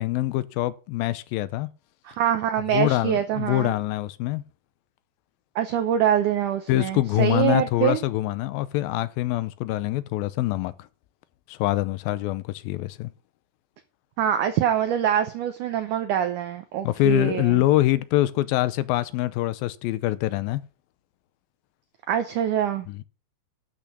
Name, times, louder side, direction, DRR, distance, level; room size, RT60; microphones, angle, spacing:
voice 1, 0.0-1.7 2.7-4.4 6.7-10.9 11.5-13.1 16.8-20.6 22.9-23.0, left 16 dB, 80° left, 2.4 m, -24 dB
voice 2, 2.1-3.7 5.6-8.0 14.2-17.6 22.1-23.0, right 10 dB, 70° right, 2.0 m, -24 dB
12.5 x 6.2 x 6.0 m
omnidirectional pair, 4.4 m